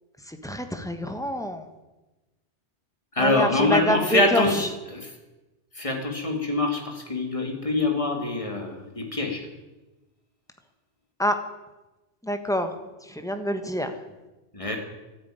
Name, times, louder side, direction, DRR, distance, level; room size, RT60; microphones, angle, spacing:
voice 1, 0.3-1.7 3.2-4.7 11.2-11.4 12.2-12.7 13.1-13.9, equal, 5° left, 6 dB, 1.2 m, -26 dB
voice 2, 3.2-5.1 5.8-9.5 14.5-14.8, left 2 dB, 25° left, 2 dB, 2.5 m, -25 dB
13.0 x 10.5 x 9.2 m, 1.1 s
omnidirectional pair, 1.2 m